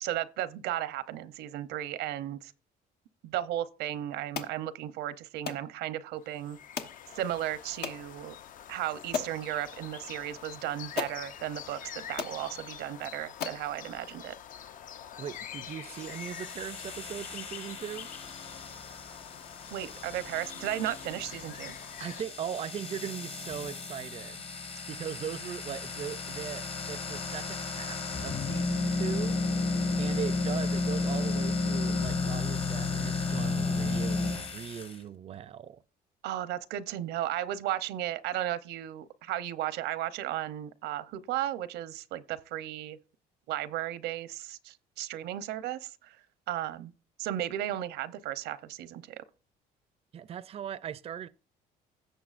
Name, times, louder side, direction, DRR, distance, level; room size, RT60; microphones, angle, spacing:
voice 1, 0.0-2.5 3.2-6.6 7.2-8.4 8.7-14.3 19.7-21.8 36.2-43.0 43.5-46.2 46.5-46.9 47.2-49.2, right 12 dB, 90° right, 0.7 m, -35 dB
sound 1, 4.3-4.6 5.5-5.7 6.8-7.0 7.8-8.0 8.6-8.7 9.1-9.4 10.4-10.5 11.0-11.2 11.8-11.9 12.2-12.4 13.0-13.1 13.4-13.7, left 6 dB, 75° left, 1.2 m, -35 dB
sound 2, 6.2-22.2, left 9 dB, 50° left, 0.5 m, -46 dB
voice 2, 15.2-18.1 22.0-35.8 50.1-51.3, right 9 dB, 35° right, 0.4 m, -39 dB
sound 3, 15.8-34.9, left 3 dB, 35° left, 1.1 m, -33 dB
16.5 x 6.9 x 2.5 m
cardioid pair, 110°, 17 cm